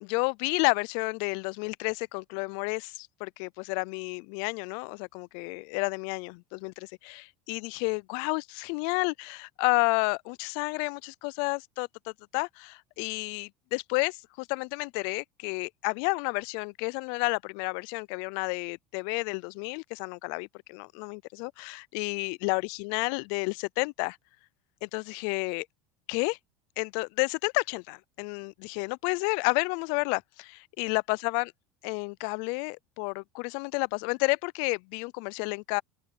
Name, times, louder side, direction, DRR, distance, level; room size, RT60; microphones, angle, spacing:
voice 1, 0.0-24.2 24.8-25.7 26.1-26.4 26.8-31.5 31.8-35.8, left 30 dB, 65° left, 0.4 m, -31 dB
open air
supercardioid pair, 135°, 8 cm